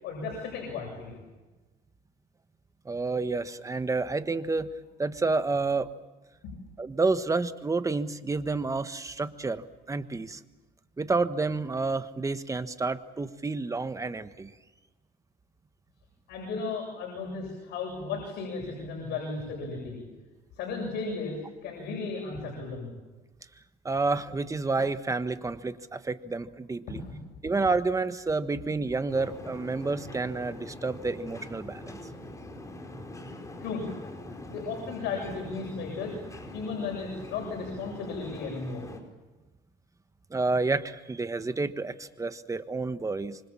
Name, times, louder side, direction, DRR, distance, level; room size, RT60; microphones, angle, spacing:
voice 1, 0.0-1.2 6.4-6.5 16.3-20.0 20.6-22.9 26.9-27.1 33.6-33.8 34.5-36.1 36.5-38.9, left 4 dB, 80° left, -2 dB, 7.6 m, -35 dB
voice 2, 2.8-4.7 5.0-5.9 6.8-10.4 11.0-14.5 23.8-27.0 27.4-32.0 40.3-43.4, right 3 dB, 20° right, 11 dB, 1.4 m, -29 dB
sound 1, 29.1-39.0, left 1 dB, 20° left, 4.9 m, -43 dB
27.0 x 25.0 x 7.4 m, 1.2 s
cardioid pair, 110°, 17 cm